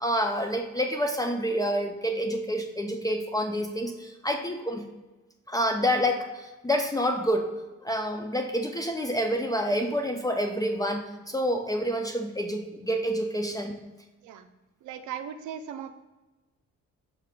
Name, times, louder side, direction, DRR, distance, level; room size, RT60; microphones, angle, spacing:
voice 1, 0.0-4.8 5.5-7.5 7.8-13.7, equal, 15° left, 4 dB, 0.4 m, -28 dB
voice 2, 14.8-15.9, right 8 dB, 75° right, 9 dB, 0.5 m, -38 dB
5.7 x 3.5 x 2.2 m, 1.1 s
cardioid pair, 90°, 30 cm